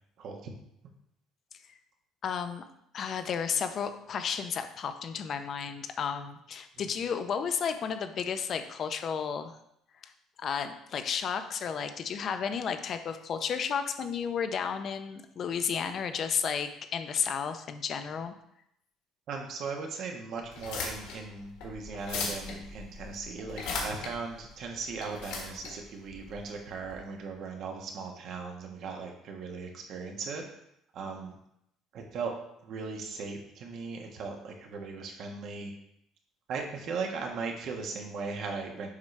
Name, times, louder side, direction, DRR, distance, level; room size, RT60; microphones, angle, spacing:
voice 1, 0.2-0.5 6.7-6.8 19.3-30.4 30.9-31.4 31.9-32.3 32.6-35.7 36.5-38.9, right 4 dB, 60° right, 2 dB, 1.3 m, -38 dB
voice 2, 2.2-2.6 2.9-9.5 10.0-10.1 10.4-18.3, left 7 dB, 45° left, 8 dB, 0.6 m, -32 dB
sound 1, 20.4-26.9, left 4 dB, 85° left, 1.9 m, -38 dB
7.3 x 5.0 x 3.2 m, 0.77 s
cardioid pair, 105°, 0 cm